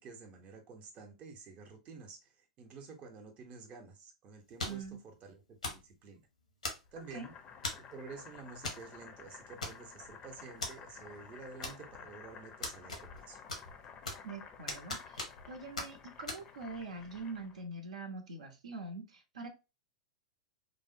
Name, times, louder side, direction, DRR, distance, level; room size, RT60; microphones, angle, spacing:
voice 1, 0.0-6.2 6.9-7.3 7.7-13.4, right 4 dB, 35° right, 3 dB, 0.7 m, -50 dB
sound 1, 4.6-4.9 5.6-5.9 6.6-7.1 7.6-7.9 8.6-8.8 9.1-9.2 9.6-10.1 10.6-10.7 11.6-12.1 12.6-13.2 13.5-14.3 14.7-15.5 15.8-15.9 16.3-16.4, left 2 dB, 90° left, 0.9 m, -39 dB
voice 2, 4.7-5.0 7.1-7.3 14.2-19.5, right 3 dB, 75° right, 4 dB, 0.7 m, -44 dB
Boiling, 7.0-17.6, left 6 dB, 30° left, 0.5 m, -53 dB
3.3 x 2.0 x 2.5 m, 0.28 s
figure-of-eight pair, 95°, 4 cm